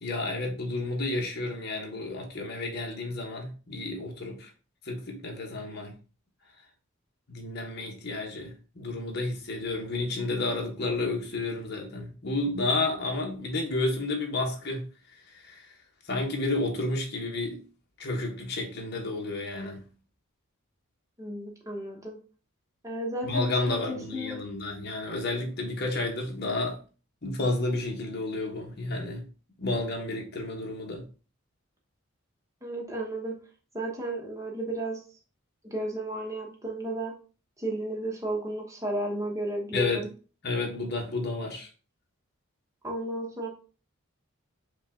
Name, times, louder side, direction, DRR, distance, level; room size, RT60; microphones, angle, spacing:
voice 1, 0.0-4.5 4.8-6.0 7.3-14.9 15.1-15.7 16.0-17.6 18.0-19.8 23.2-26.8 27.2-29.3 29.6-31.1 39.7-40.0 40.4-41.7, left 2 dB, 50° left, 1.1 m, -31 dB
voice 2, 21.2-22.2 22.8-24.4 32.6-33.3 33.7-35.0 35.7-37.1 37.6-40.1 42.8-43.5, right 1 dB, 15° right, 0.9 m, -33 dB
5.1 x 2.3 x 3.6 m
head